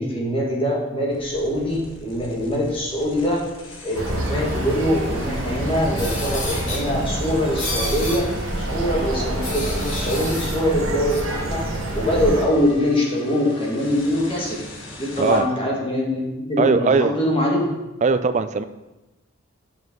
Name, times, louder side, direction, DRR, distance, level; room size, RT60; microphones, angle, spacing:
voice 1, 0.0-3.5 3.8-8.3 8.6-11.7 11.9-14.6 15.0-17.7, equal, 25° left, -3 dB, 1.7 m, -23 dB
sound 1, 1.1-15.4, left 1 dB, 70° left, 1.4 m, -39 dB
sound 2, 3.9-12.4, right 1 dB, 80° right, 1.0 m, -27 dB
sound 3, 6.0-6.8 7.6-8.2 9.4-10.6 11.1-11.2, left 2 dB, 45° left, 2.7 m, -30 dB
voice 2, 16.6-17.1 18.0-18.6, right 4 dB, 35° right, 11 dB, 0.3 m, -19 dB
5.9 x 5.4 x 5.2 m, 1.0 s
head